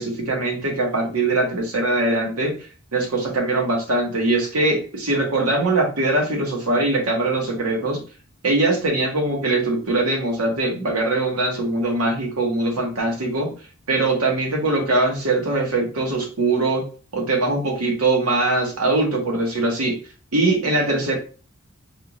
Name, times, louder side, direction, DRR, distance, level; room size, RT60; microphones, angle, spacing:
voice 1, 0.0-2.5 2.9-8.0 8.4-13.5 13.9-16.8 17.1-19.9 20.3-21.2, right 2 dB, 90° right, 0 dB, 1.2 m, -22 dB
3.5 x 2.4 x 2.9 m, 0.37 s
head